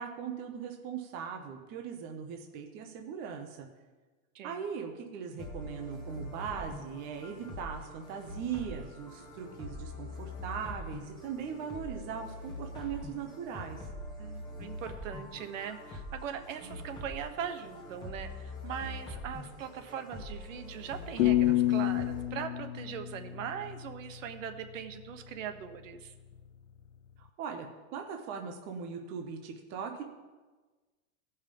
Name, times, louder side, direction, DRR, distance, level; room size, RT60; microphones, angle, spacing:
voice 1, 0.0-3.7 4.4-13.8 16.6-16.8 27.2-27.7 27.9-30.0, right 7 dB, 25° right, 3 dB, 0.7 m, -39 dB
sound 1, 5.4-22.2, left 1 dB, 10° left, 1.8 m, -44 dB
voice 2, 14.2-26.1, right 8 dB, 65° right, 8 dB, 1.2 m, -40 dB
sound 2, 21.2-24.1, left 15 dB, 60° left, 0.5 m, -28 dB
16.0 x 5.5 x 5.2 m, 1.3 s
supercardioid pair, 165°, 42 cm